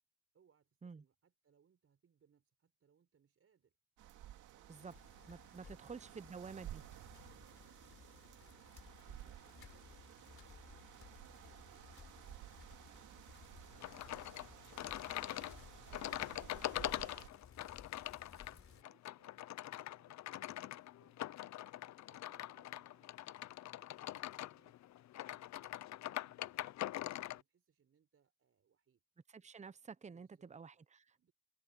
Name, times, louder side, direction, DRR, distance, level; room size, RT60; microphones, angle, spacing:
voice 1, 0.3-3.8 4.4-5.0 5.6-6.4 6.6-17.9 18.2-25.0 25.2-29.0 30.0-30.5 31.2-31.3, right 7 dB, 50° right, 5.4 m, -74 dB
sound 1, 4.0-17.3, right 13 dB, 85° right, 2.3 m, -55 dB
Bicycle, 4.7-18.8, left 6 dB, 45° left, 3.9 m, -60 dB
voice 2, 5.3-6.8 29.3-31.3, right 5 dB, 25° right, 0.9 m, -51 dB
sound 2, 13.8-27.4, left 14 dB, 65° left, 0.6 m, -44 dB
cardioid pair, 90°, 30 cm